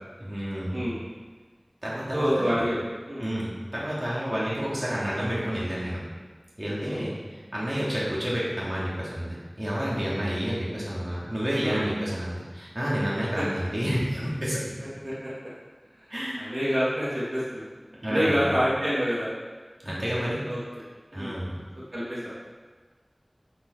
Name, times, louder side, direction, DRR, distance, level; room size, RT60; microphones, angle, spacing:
voice 1, 0.2-0.8 1.8-2.5 3.2-6.0 6.6-14.6 16.1-16.5 18.0-18.4 19.8-20.5 21.1-21.5, equal, 40° right, -7 dB, 3.2 m, -29 dB
voice 2, 2.1-2.8 3.1-3.3 6.8-7.1 11.6-11.8 13.4-13.5 15.0-15.3 15.9-16.1 16.4-17.7 18.0-19.3 20.4-20.6 21.1-21.3 21.9-22.3, equal, 75° right, -9 dB, 3.1 m, -27 dB
8.5 x 8.1 x 4.9 m, 1.4 s
wide cardioid pair, 40°, 0 cm